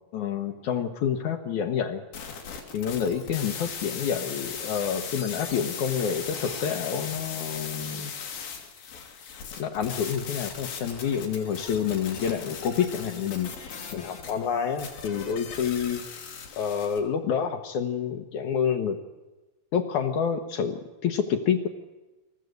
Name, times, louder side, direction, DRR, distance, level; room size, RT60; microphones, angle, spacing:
voice 1, 0.1-2.0 2.7-8.1 9.6-16.2 16.6-19.0 19.7-21.7, left 7 dB, 65° left, 6 dB, 2.2 m, -28 dB
sound 1, 2.1-17.0, left 6 dB, 85° left, 4.2 m, -38 dB
25.5 x 14.5 x 8.0 m, 1.1 s
omnidirectional pair, 4.1 m